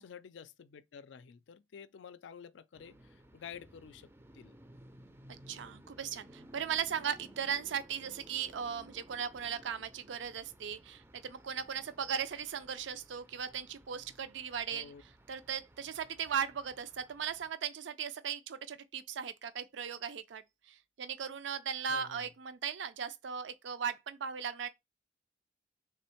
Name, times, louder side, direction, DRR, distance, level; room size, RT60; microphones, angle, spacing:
voice 1, 0.0-4.1 4.3-4.6 14.7-15.0 21.9-22.3, left 7 dB, 75° left, 0.4 m, -50 dB
sound 1, 2.7-17.5, right 1 dB, 15° right, 0.4 m, -58 dB
voice 2, 5.5-14.9 15.3-20.4 20.7-24.7, right 7 dB, 75° right, 0.5 m, -37 dB
3.6 x 3.4 x 4.3 m
head